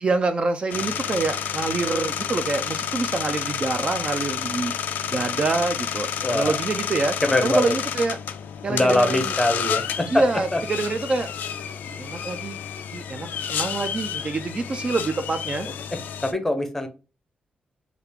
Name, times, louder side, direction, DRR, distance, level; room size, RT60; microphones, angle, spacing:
voice 1, 0.0-4.7 5.1-7.2 7.4-8.2 8.6-9.3 10.1-11.3 11.9-12.6 12.9-15.7, right 3 dB, 35° right, 0.3 m, -26 dB
sound 1, 0.7-16.3, left 8 dB, 85° left, 0.3 m, -30 dB
voice 2, 6.2-6.6 7.2-7.7 8.7-10.2 10.5-10.6 16.2-16.9, left 1 dB, 10° left, 0.6 m, -22 dB
3.2 x 2.4 x 3.3 m
cardioid pair, 110°, 3 cm